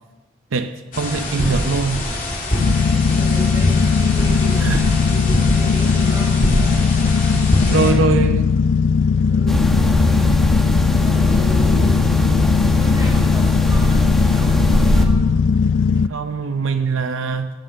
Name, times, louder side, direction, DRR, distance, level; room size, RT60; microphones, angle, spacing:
voice 1, 0.5-2.0 4.6-4.8 7.3-8.5 16.0-17.5, right 4 dB, 80° right, 9 dB, 0.6 m, -22 dB
sound 1, 0.9-7.9, left 1 dB, 40° left, 2.7 m, -23 dB
voice 2, 1.3-1.6 3.1-4.7 5.0-7.0 7.5-8.2 9.2-9.9 10.8-15.3, equal, 20° right, -4 dB, 5.2 m, -34 dB
sound 2, 2.6-16.1, left 5 dB, 70° left, 0.3 m, -18 dB
sound 3, 9.5-15.1, equal, ahead, 1.1 m, -20 dB
15.5 x 7.8 x 7.4 m, 1.3 s
head